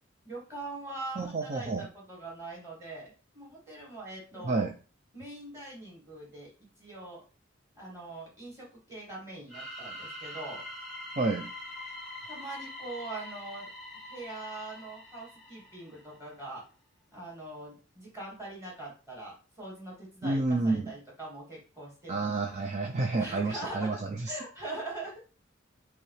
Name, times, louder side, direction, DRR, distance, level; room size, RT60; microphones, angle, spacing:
voice 1, 0.2-4.7 5.1-6.5 6.8-7.2 7.7-10.6 12.3-13.7 14.0-16.6 17.1-22.7 23.1-24.0 24.3-25.2, right 2 dB, 15° right, -5 dB, 2.5 m, -42 dB
voice 2, 1.2-1.9 4.4-4.7 11.2-11.5 20.2-20.9 22.1-24.3, right 3 dB, 35° right, 4 dB, 0.5 m, -29 dB
sound 1, 9.5-16.1, left 1 dB, ahead, 1.5 m, -44 dB
5.7 x 2.8 x 3.2 m, 0.36 s
head